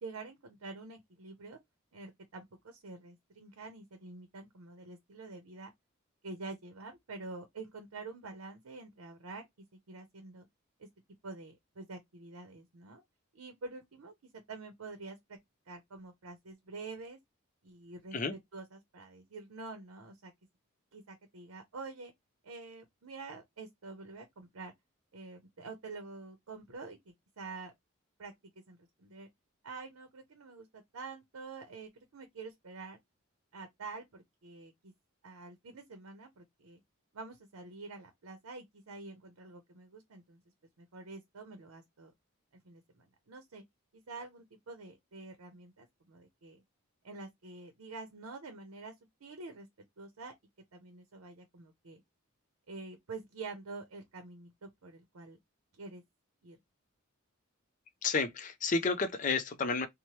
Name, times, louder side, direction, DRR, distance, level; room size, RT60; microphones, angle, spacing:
voice 1, 0.0-1.6 1.9-5.7 6.2-9.5 9.9-10.5 10.8-10.9 11.2-13.0 13.3-15.2 15.7-17.2 17.6-20.3 20.9-22.1 22.4-24.7 25.1-27.7 28.2-28.3 28.7-29.3 29.6-33.0 33.5-34.9 35.2-36.8 37.1-40.4 40.8-42.1 42.5-43.6 43.9-46.6 47.0-48.9 49.2-49.7 50.0-50.3 50.7-52.0 52.7-55.4 55.8-56.0 56.4-56.6, right 3 dB, 85° right, 0.7 m, -47 dB
voice 2, 58.0-59.9, left 4 dB, 35° left, 0.4 m, -31 dB
2.9 x 2.1 x 3.0 m
head